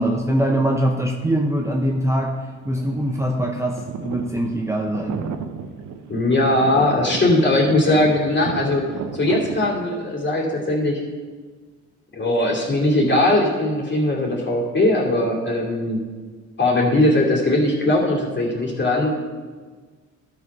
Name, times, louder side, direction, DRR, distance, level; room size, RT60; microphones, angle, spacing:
voice 1, 0.0-2.4 2.7-5.2, right 1 dB, 10° right, 1 dB, 0.8 m, -22 dB
sound 1, 1.6-2.3 2.6-9.7, right 7 dB, 75° right, 0.8 m, -34 dB
voice 2, 6.1-8.8 9.1-11.0 12.1-16.0 16.6-19.1, left 1 dB, 35° left, -2 dB, 2.7 m, -19 dB
12.0 x 5.0 x 5.4 m, 1.5 s
cardioid pair, 90°, 30 cm